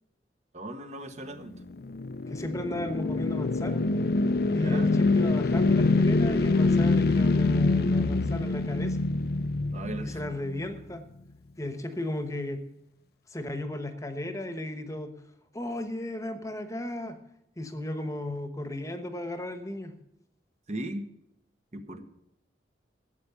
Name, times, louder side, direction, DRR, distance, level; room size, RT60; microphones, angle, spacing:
voice 1, 0.5-1.5 4.6-4.9 9.7-10.2 20.7-21.1 21.7-22.1, right 1 dB, 40° right, 8 dB, 1.1 m, -37 dB
sound 1, 1.5-10.8, left 3 dB, 55° left, 0.5 m, -25 dB
voice 2, 2.3-3.8 4.5-9.0 10.0-11.0 11.6-12.6 13.3-15.1 15.5-17.2 17.6-19.9, left 1 dB, 20° left, 9 dB, 1.1 m, -35 dB
13.0 x 8.3 x 6.9 m, 0.82 s
head